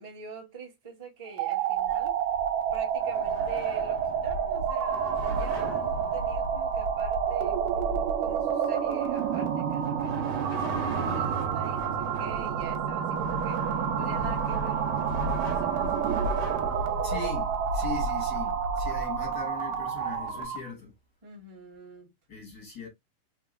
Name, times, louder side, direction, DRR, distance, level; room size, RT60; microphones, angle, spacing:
voice 1, 0.0-2.2 2.7-15.9 21.2-22.1, right 4 dB, 15° right, 1.1 m, -45 dB
sound 1, 1.3-20.7, right 8 dB, 80° right, 2.5 m, -29 dB
sound 2, 1.8-20.4, right 1 dB, 40° right, 1.6 m, -37 dB
voice 2, 17.0-20.9 22.3-22.9, left 5 dB, 35° left, 2.6 m, -40 dB
5.0 x 3.6 x 2.5 m
omnidirectional pair, 3.7 m